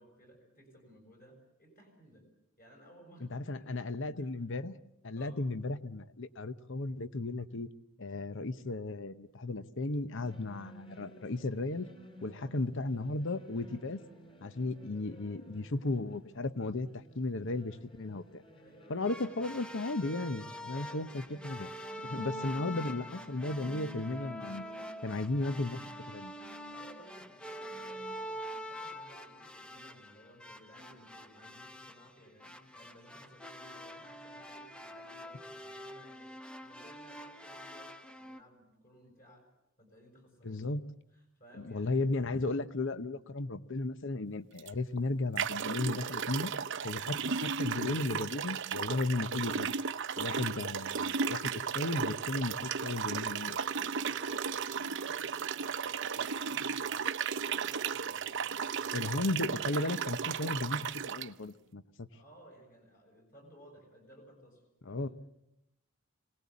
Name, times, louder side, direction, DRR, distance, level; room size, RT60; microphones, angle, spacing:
voice 1, 0.0-2.2 2.6-3.7 4.1-4.3 5.1-5.4 12.3-12.6 18.6-19.1 20.7-21.1 22.0-22.3 26.6-36.3 36.6-39.4 39.8-40.7 41.1-42.0 53.4-59.3 62.1-65.1, equal, 40° left, 3 dB, 6.8 m, -58 dB
voice 2, 3.3-4.7 5.0-7.7 8.0-11.9 12.2-14.0 14.4-18.4 18.9-21.7 22.0-24.7 25.0-25.8 26.1-26.3 40.4-40.8 41.6-46.5 46.8-49.7 50.2-53.6 58.9-62.1 64.9-65.1, left 2 dB, 60° left, 13 dB, 0.9 m, -35 dB
sound 1, 10.1-28.1, left 1 dB, 25° left, 2.9 m, -54 dB
sound 2, 19.0-38.4, equal, 5° left, 0.8 m, -45 dB
sound 3, 44.6-44.7 45.4-61.3, right 6 dB, 60° right, 0.8 m, -35 dB
25.5 x 18.5 x 8.5 m, 0.84 s
head